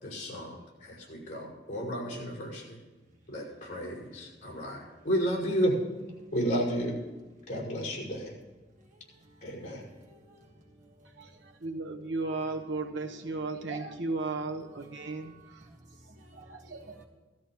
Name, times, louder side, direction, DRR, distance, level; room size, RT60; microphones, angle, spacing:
voice 1, 0.0-2.8 3.3-5.8 6.3-7.0 7.5-8.3 9.4-9.8, equal, 45° left, 5.6 m, -32 dB
voice 2, 9.2-9.5 10.2-10.8 15.6-15.9 16.1-17.1, equal, 40° right, 1.7 m, -56 dB
voice 3, 11.6-15.7 16.0-17.0, right 3 dB, 80° right, 1.1 m, -35 dB
18.0 x 13.0 x 3.1 m
head